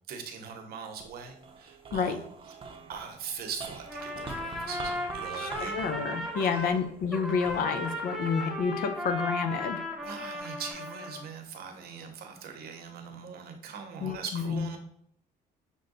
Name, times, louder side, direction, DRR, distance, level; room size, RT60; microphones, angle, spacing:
voice 1, 0.1-2.2 2.9-5.8 6.4-6.8 10.0-14.8, right 6 dB, 65° right, 5 dB, 0.9 m, -41 dB
sound 1, 0.9-9.4 10.0-10.7, right 3 dB, 30° right, 0.7 m, -46 dB
Trumpet, 3.8-6.8 7.1-11.2, left 1 dB, ahead, 0.8 m, -36 dB
voice 2, 5.3-9.8 14.0-14.7, left 5 dB, 60° left, 8 dB, 0.6 m, -29 dB
6.1 x 2.2 x 3.9 m, 0.66 s
cardioid pair, 110°, 17 cm